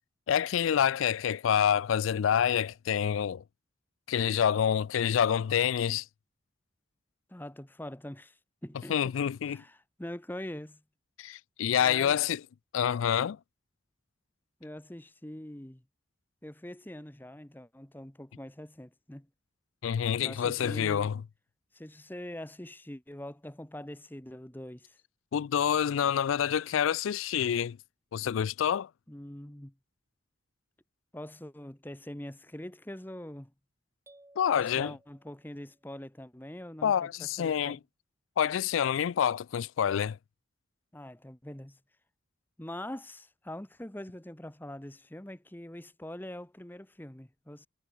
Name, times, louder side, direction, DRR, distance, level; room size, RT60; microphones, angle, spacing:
voice 1, 0.3-3.4 4.1-6.0 8.9-9.6 11.2-12.4 12.7-13.4 19.8-21.1 25.3-27.8 28.1-28.9 34.4-34.9 36.8-37.8 38.4-40.2, left 8 dB, 90° left, 0.4 m, -27 dB
voice 2, 7.3-9.0 9.4-10.8 11.8-12.2 14.6-15.8 16.4-19.3 20.2-21.1 21.7-25.0 29.1-29.8 31.1-33.5 34.5-37.8 40.9-41.8 42.6-47.7, left 1 dB, 10° left, 0.9 m, -43 dB
sound 1, 34.1-36.0, right 1 dB, 15° right, 1.6 m, -60 dB
head